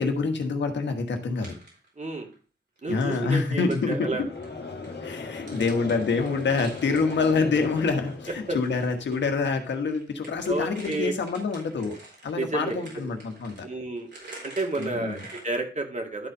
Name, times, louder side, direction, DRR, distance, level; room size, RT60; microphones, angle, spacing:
voice 1, 0.0-1.6 2.9-4.3 5.0-12.0 12.2-13.7 14.8-15.3, left 4 dB, 85° left, 5 dB, 1.3 m, -26 dB
sound 1, 1.3-2.3 2.8-9.2 9.5-15.6, right 2 dB, 75° right, 4.1 m, -48 dB
voice 2, 2.0-2.3 2.8-4.2 8.5-8.6 10.5-11.1 12.4-13.1 13.6-14.1 14.4-16.3, right 2 dB, 40° right, 3 dB, 2.2 m, -30 dB
Conversation / Crowd, 4.0-9.3, left 3 dB, 65° left, 1.4 m, -38 dB
11.0 x 4.4 x 5.1 m, 0.38 s
cardioid pair, 50°, 18 cm